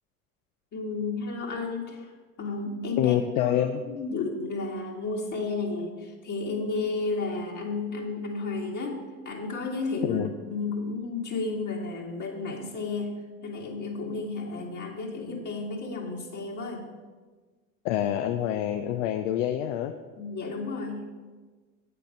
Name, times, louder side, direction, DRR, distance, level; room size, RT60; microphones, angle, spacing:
voice 1, 0.7-2.1 2.4-9.0 9.2-10.2 10.5-13.1 13.4-16.9 20.2-21.1, left 3 dB, 50° left, -3 dB, 1.9 m, -32 dB
voice 2, 3.0-3.8 10.0-10.3 17.8-19.9, left 11 dB, 75° left, 7 dB, 0.6 m, -26 dB
8.4 x 6.6 x 5.3 m, 1.4 s
hypercardioid pair, 65°, 39 cm